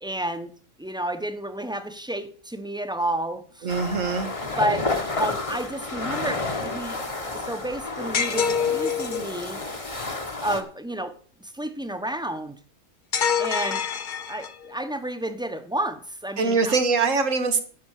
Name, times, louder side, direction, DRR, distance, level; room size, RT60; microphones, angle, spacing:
voice 1, 0.0-0.5 0.8-3.7 4.6-4.9 5.2-9.6 10.4-11.1 11.4-12.6 13.4-13.8 14.3-16.7, right 1 dB, 5° right, 8 dB, 1.1 m, -31 dB
voice 2, 3.6-4.3 16.4-17.6, right 4 dB, 75° right, 8 dB, 1.8 m, -23 dB
sound 1, 3.7-10.6, left 3 dB, 25° left, 1.4 m, -31 dB
sound 2, 8.1-9.3 13.1-14.7, left 7 dB, 45° left, 0.9 m, -25 dB
11.5 x 6.9 x 6.6 m, 0.43 s
omnidirectional pair, 1.3 m